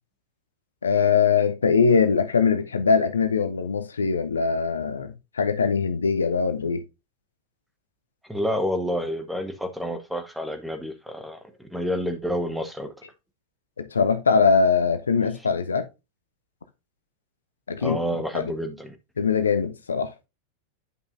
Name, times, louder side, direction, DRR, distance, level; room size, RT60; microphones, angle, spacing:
voice 1, 0.8-6.8 13.8-15.9 17.7-18.0 18.3-18.5 19.2-20.1, left 5 dB, 70° left, 0.6 m, -22 dB
voice 2, 8.3-12.9 17.8-19.0, equal, ahead, 1.0 m, -29 dB
9.5 x 5.4 x 2.5 m
figure-of-eight pair, 90°, 0 cm